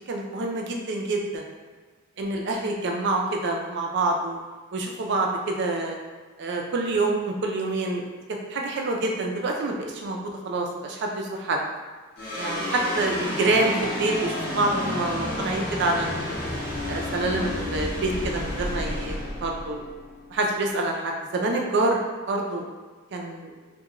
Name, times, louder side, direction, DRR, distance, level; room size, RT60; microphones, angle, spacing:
voice 1, 0.1-1.4 2.2-4.4 4.7-5.9 6.4-8.0 8.5-10.2 10.4-11.6 12.4-16.4 16.9-19.8 20.3-22.0 22.3-22.6 23.1-23.5, right 2 dB, 55° right, 1 dB, 0.4 m, -26 dB
sound 1, 12.2-20.7, left 1 dB, 45° left, 0.6 m, -31 dB
2.8 x 2.2 x 2.4 m, 1.4 s
head